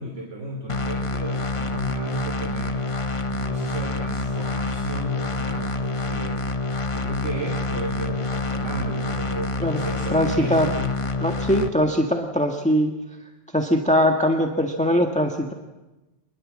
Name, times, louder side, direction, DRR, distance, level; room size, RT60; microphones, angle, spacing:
voice 1, 0.0-2.9 3.3-6.4 6.9-11.0, right 1 dB, 85° right, 1 dB, 3.6 m, -34 dB
sound 1, 0.7-11.7, left 2 dB, 30° left, 1.0 m, -27 dB
voice 2, 10.1-10.7 11.2-12.9 13.5-15.5, equal, 5° left, 3 dB, 1.6 m, -21 dB
26.0 x 21.0 x 7.5 m, 1.1 s
omnidirectional pair, 1.2 m